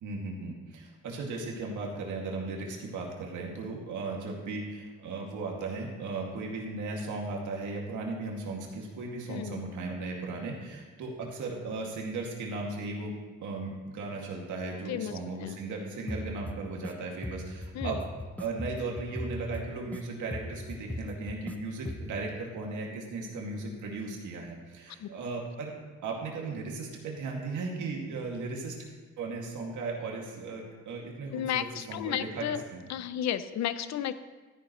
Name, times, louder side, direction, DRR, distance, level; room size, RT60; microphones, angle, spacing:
voice 1, 0.0-13.2 13.4-18.0 18.4-25.7 26.0-28.8 29.2-32.5 32.7-32.8, right 3 dB, 80° right, -1 dB, 2.3 m, -36 dB
voice 2, 9.3-9.6 14.9-15.6 17.7-18.0 25.0-25.1 31.3-32.6 32.9-34.1, left 10 dB, 65° left, 13 dB, 0.6 m, -33 dB
sound 1, 16.1-16.9 17.2-20.0 20.3-21.5 21.9-22.2, equal, 5° left, 0.7 m, -38 dB
13.5 x 9.7 x 3.2 m, 1.4 s
cardioid pair, 90°, 30 cm